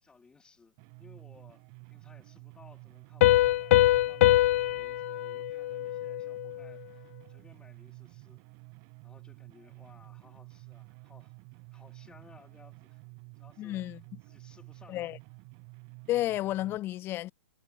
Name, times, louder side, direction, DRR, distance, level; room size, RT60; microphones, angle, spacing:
voice 1, 0.0-8.4 9.0-11.3 11.7-13.0 13.4-13.8 14.2-15.1, left 4 dB, 10° left, 2.9 m, -59 dB
sound 1, 0.8-16.8, right 40 dB or more, 40° right, 2.2 m, -51 dB
Piano, 3.2-6.6, left 15 dB, 55° left, 0.4 m, -24 dB
voice 2, 13.6-14.0 14.9-15.2 16.1-17.3, left 15 dB, 25° left, 0.8 m, -31 dB
hypercardioid pair, 135°, 9 cm